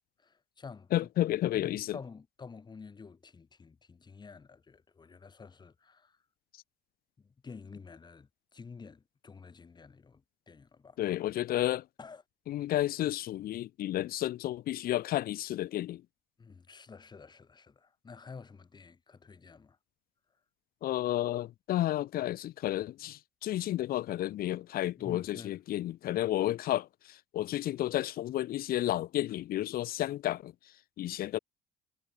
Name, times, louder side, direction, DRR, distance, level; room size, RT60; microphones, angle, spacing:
voice 1, 0.2-1.1 1.4-6.2 7.2-11.0 12.0-12.2 16.4-19.8 25.0-25.6, left 5 dB, 25° left, 1.7 m, -50 dB
voice 2, 0.9-2.0 11.0-11.8 12.5-16.0 20.8-26.9 27.3-30.5 31.0-31.4, left 14 dB, 60° left, 0.7 m, -31 dB
cardioid pair, 110°, 17 cm